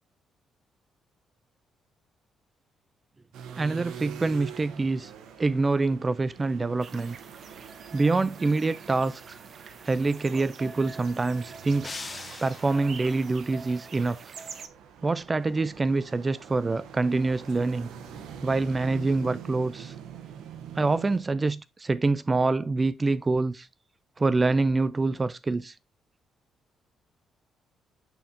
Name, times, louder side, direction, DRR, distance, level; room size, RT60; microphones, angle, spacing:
sound 1, 3.3-21.2, right 8 dB, 85° right, 0.9 m, -45 dB
voice 1, 3.6-5.1 5.4-7.2 7.9-9.2 9.8-11.9 12.4-14.2 15.0-17.9 18.4-19.9 20.8-23.7 24.2-25.7, right 3 dB, 25° right, 0.3 m, -26 dB
sound 2, 6.8-14.7, right 5 dB, 55° right, 0.8 m, -45 dB
sound 3, 11.8-13.1, left 4 dB, 30° left, 0.6 m, -40 dB
9.0 x 4.3 x 2.6 m
cardioid pair, 90°, 0 cm